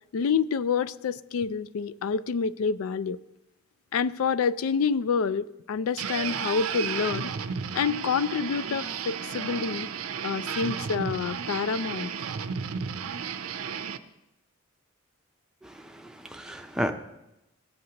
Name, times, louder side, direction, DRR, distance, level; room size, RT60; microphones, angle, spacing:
voice 1, 0.1-3.2 3.9-7.3 7.7-9.9 10.2-12.1, left 6 dB, 75° left, 15 dB, 0.4 m, -27 dB
sound 1, 6.0-14.0, right 7 dB, 85° right, 0.5 m, -33 dB
voice 2, 15.6-16.9, equal, 5° right, 4 dB, 0.5 m, -33 dB
17.0 x 7.8 x 2.9 m, 0.91 s
head